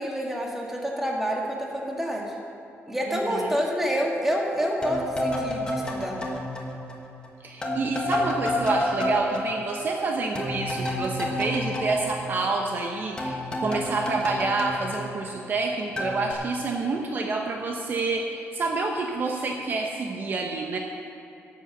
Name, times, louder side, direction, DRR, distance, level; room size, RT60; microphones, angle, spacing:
voice 1, 0.0-2.3 2.9-6.2, equal, 5° right, -2 dB, 1.7 m, -28 dB
voice 2, 3.1-3.6 7.4-20.8, right 3 dB, 40° right, 2 dB, 0.9 m, -28 dB
sound 1, 4.8-7.3 7.6-12.9 13.2-15.6 16.0-16.3, left 1 dB, 20° left, 1.5 m, -30 dB
11.5 x 7.8 x 7.0 m, 2.7 s
cardioid pair, 145°, 5 cm